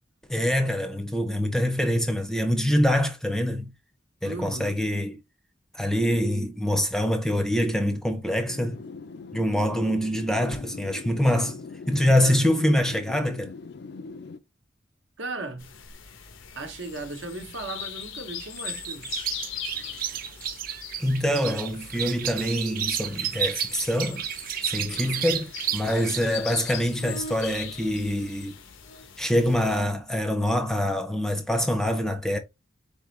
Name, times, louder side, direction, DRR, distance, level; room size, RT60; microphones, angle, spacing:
voice 1, 0.3-3.7 4.2-5.2 5.7-8.8 9.3-13.5 21.0-24.2 24.6-28.6 29.2-32.4, equal, 5° left, 0.5 m, -25 dB
voice 2, 4.2-4.8 12.2-12.5 15.2-15.7 16.6-19.1 24.9-25.2, right 3 dB, 70° right, 0.9 m, -37 dB
sound 1, 8.5-14.4, left 4 dB, 55° left, 0.4 m, -41 dB
sound 2, 15.6-29.8, left 7 dB, 85° left, 0.8 m, -41 dB
sound 3, 18.4-26.2, right 10 dB, 45° right, 0.4 m, -32 dB
4.1 x 3.6 x 3.1 m
head